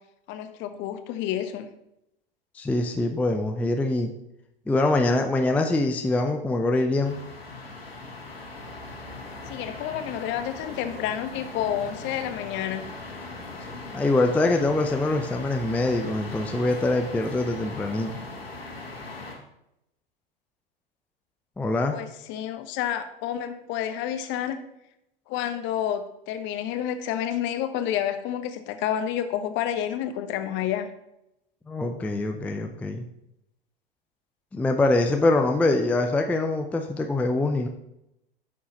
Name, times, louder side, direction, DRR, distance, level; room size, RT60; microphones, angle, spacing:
voice 1, 0.3-1.7 9.5-12.9 21.9-24.6 25.3-30.9, left 10 dB, 40° left, 10 dB, 0.9 m, -29 dB
voice 2, 2.5-4.1 4.7-7.2 13.9-18.1 21.6-22.0 31.7-33.1 34.5-37.7, left 2 dB, 5° left, 4 dB, 0.4 m, -24 dB
sound 1, 7.0-19.3, left 2 dB, 90° left, 1.7 m, -39 dB
11.0 x 6.5 x 2.9 m, 0.85 s
figure-of-eight pair, 90°, 29 cm